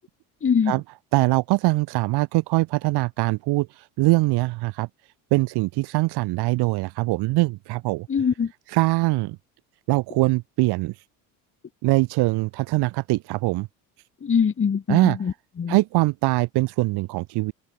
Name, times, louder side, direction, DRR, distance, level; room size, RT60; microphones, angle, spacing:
voice 1, 0.4-0.8 8.1-8.5 14.2-15.3 15.6-15.8, left 6 dB, 30° left, 5.3 m, -22 dB
voice 2, 1.1-3.7 4.0-4.9 5.3-8.1 8.7-9.4 9.9-10.9 11.8-13.7 14.9-15.2 15.7-17.5, right 21 dB, 70° right, 5.0 m, -22 dB
open air
supercardioid pair, 100°, 41 cm